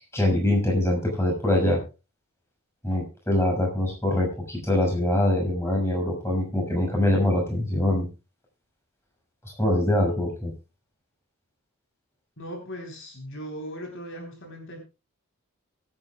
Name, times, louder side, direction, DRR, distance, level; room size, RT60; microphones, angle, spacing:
voice 1, 0.1-1.8 2.8-8.1 9.6-10.5, left 1 dB, 10° left, 0 dB, 6.3 m, -23 dB
voice 2, 12.4-14.8, equal, 55° left, 3 dB, 3.9 m, -38 dB
23.5 x 9.7 x 2.4 m, 0.30 s
head